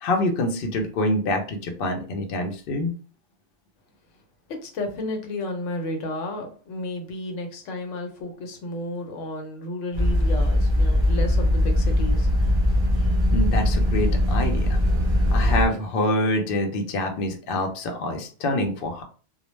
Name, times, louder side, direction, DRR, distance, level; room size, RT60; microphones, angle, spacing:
voice 1, 0.0-2.9 13.3-14.8 15.3-19.0, left 1 dB, 60° left, 0.7 m, -26 dB
voice 2, 4.5-12.3, left 1 dB, 90° left, 1.0 m, -32 dB
sound 1, 9.9-15.6, left 1 dB, 35° right, 0.5 m, -20 dB
2.2 x 2.1 x 3.0 m
omnidirectional pair, 1.3 m